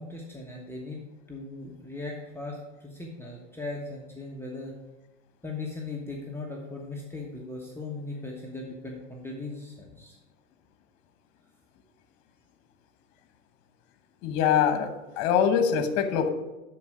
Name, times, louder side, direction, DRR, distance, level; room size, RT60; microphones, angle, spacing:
voice 1, 0.0-4.8 5.4-10.2, left 2 dB, 5° left, -3 dB, 1.2 m, -38 dB
voice 2, 14.2-14.9 15.2-16.3, left 8 dB, 55° left, 9 dB, 1.1 m, -23 dB
10.5 x 4.5 x 4.9 m, 1.1 s
hypercardioid pair, 95°, 39 cm